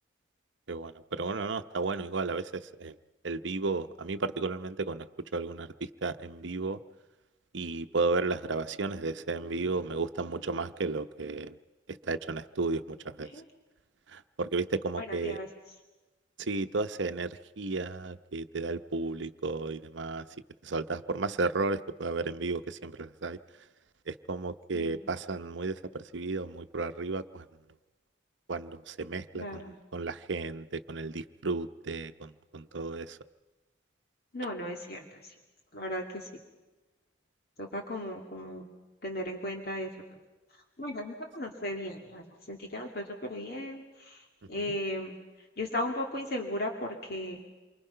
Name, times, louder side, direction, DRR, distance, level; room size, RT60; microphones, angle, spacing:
voice 1, 0.7-3.0 3.2-5.1 5.3-6.8 7.5-11.6 11.9-13.3 14.1-15.4 16.4-20.3 20.6-23.4 24.1-27.5 28.5-29.6 29.9-33.2 44.6-44.7, right 3 dB, 75° right, 10 dB, 0.8 m, -33 dB
voice 2, 15.0-15.5 24.7-25.0 29.3-29.8 34.3-35.3 35.7-36.3 37.6-38.7 39.0-39.9 40.8-45.2 45.6-47.4, left 1 dB, 50° left, 1 dB, 2.4 m, -36 dB
28.0 x 24.5 x 5.7 m, 1.2 s
head